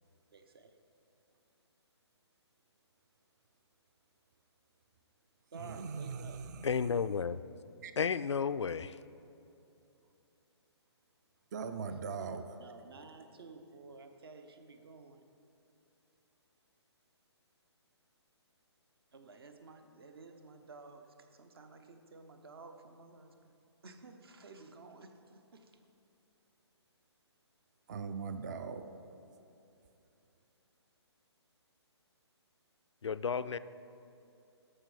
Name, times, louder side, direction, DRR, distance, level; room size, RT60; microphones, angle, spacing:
voice 1, 0.3-0.8 5.5-6.4 11.9-12.3 12.6-15.2 19.1-23.5 23.8-25.8, right 3 dB, 55° right, 7 dB, 0.9 m, -53 dB
voice 2, 5.5-6.9 7.8-7.9 11.5-12.4 27.9-28.8, right 5 dB, 40° right, 9 dB, 0.5 m, -40 dB
voice 3, 6.6-7.4 8.0-9.0 33.0-33.6, left 6 dB, 80° left, 15 dB, 0.4 m, -32 dB
13.5 x 5.5 x 4.9 m, 2.8 s
figure-of-eight pair, 135°, 15 cm